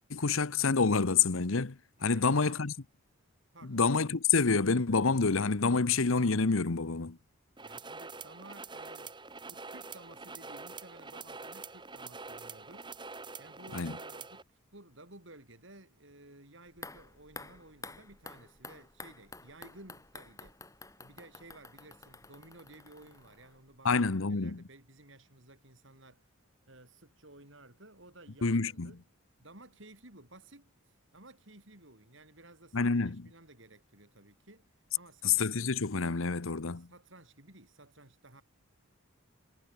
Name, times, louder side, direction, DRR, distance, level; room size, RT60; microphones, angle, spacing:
voice 1, 0.1-2.7 3.7-7.2 13.7-14.0 23.8-24.6 28.4-28.9 32.7-33.3 35.2-36.9, left 4 dB, 75° left, 1.0 m, -28 dB
voice 2, 2.0-2.6 3.5-3.8 7.6-20.6 21.0-26.3 26.6-29.0 29.4-35.4 36.7-38.4, right 2 dB, 60° right, 7.5 m, -55 dB
sound 1, 7.6-14.4, right 4 dB, 20° right, 3.3 m, -45 dB
sound 2, 16.7-23.8 24.1-24.2, left 3 dB, 15° left, 7.2 m, -50 dB
head